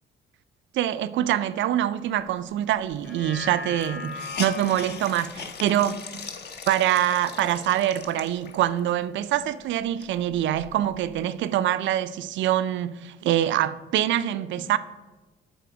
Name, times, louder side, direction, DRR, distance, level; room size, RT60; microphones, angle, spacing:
voice 1, 0.7-6.3 6.7-14.8, right 12 dB, 70° right, 0.4 m, -25 dB
sound 1, 2.9-7.5 7.9-8.0, left 3 dB, 80° left, 1.9 m, -40 dB
Hiss, 2.9-3.0 3.2-3.3 3.7-8.8 9.3-9.4 9.8-11.2, left 5 dB, 55° left, 0.8 m, -39 dB
8.5 x 3.4 x 4.7 m
cardioid pair, 90°, 20 cm